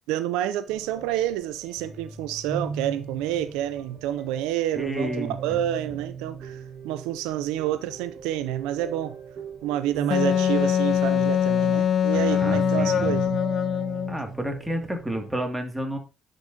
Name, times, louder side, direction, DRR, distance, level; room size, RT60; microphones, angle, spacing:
voice 1, 0.1-9.2 9.6-13.4, right 12 dB, 85° right, 0.3 m, -28 dB
sound 1, 0.7-15.4, right 6 dB, 60° right, 4.1 m, -39 dB
voice 2, 4.7-5.6 12.1-13.2 14.1-16.0, right 1 dB, 10° right, 2.1 m, -31 dB
Wind instrument woodwind instrument, 10.1-14.2, left 8 dB, 60° left, 0.5 m, -23 dB
9.7 x 5.1 x 2.7 m
supercardioid pair, 55°, 0 cm